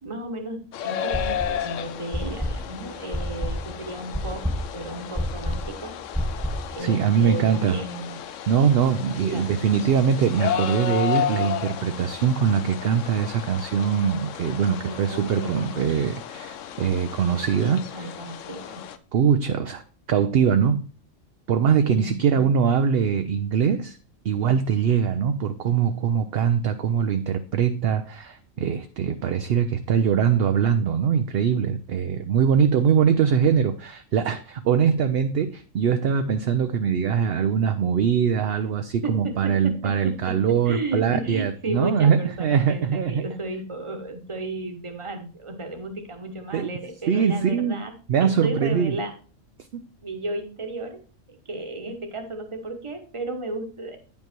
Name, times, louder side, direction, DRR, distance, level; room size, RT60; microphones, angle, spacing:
voice 1, 0.0-4.5 4.7-5.9 6.7-8.2 9.3-9.5 14.8-15.7 17.9-18.8 21.9-22.4 39.0-47.9 48.2-49.1 50.0-51.0 51.3-54.0, right 2 dB, 25° right, 5 dB, 1.2 m, -33 dB
sound 1, 0.7-19.0, left 10 dB, 75° left, 0.9 m, -33 dB
sound 2, 1.1-1.7 2.1-6.7, equal, 5° right, 1.3 m, -29 dB
voice 2, 6.8-7.8 8.5-18.1 19.1-19.8 20.1-20.8 21.5-24.0 24.2-43.2 46.5-46.7 47.1-47.8 48.1-49.0 49.7-49.8, right 7 dB, 60° right, 8 dB, 0.7 m, -22 dB
9.4 x 5.4 x 4.4 m, 0.39 s
omnidirectional pair, 1.3 m